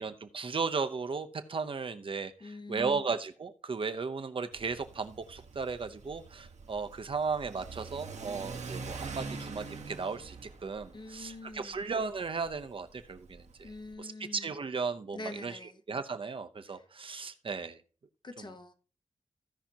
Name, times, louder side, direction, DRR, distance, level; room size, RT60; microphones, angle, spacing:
voice 1, 0.0-10.4 10.6-13.7 14.0-15.6 15.9-17.8, right 4 dB, 45° right, 0.7 m, -35 dB
voice 2, 2.4-3.0 10.9-11.8 13.6-14.5 15.1-15.8 16.6-16.9 18.2-18.7, left 2 dB, 40° left, 0.9 m, -45 dB
Car / Accelerating revving vroom, 4.5-13.9, right 4 dB, 70° right, 1.1 m, -45 dB
16.0 x 5.7 x 2.8 m
wide cardioid pair, 175°, 12 cm